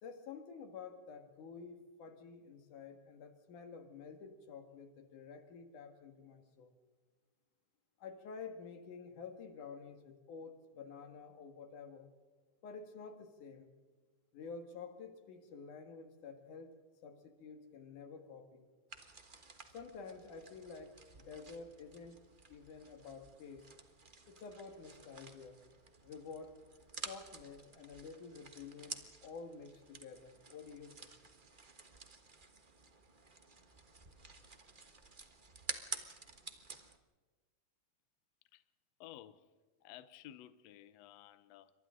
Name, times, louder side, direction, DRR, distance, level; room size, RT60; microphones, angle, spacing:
voice 1, 0.0-6.8 8.0-12.1 12.6-13.7 14.3-16.7 17.0-18.7 19.7-22.2 22.5-23.7 24.3-25.6 26.0-26.6 26.9-31.1, left 5 dB, 85° left, 3.4 m, -50 dB
sound 1, 18.9-37.0, right 4 dB, 80° right, 0.4 m, -51 dB
voice 2, 39.0-39.5 39.8-41.7, left 12 dB, 70° left, 1.8 m, -54 dB
28.5 x 25.0 x 3.8 m
omnidirectional pair, 3.5 m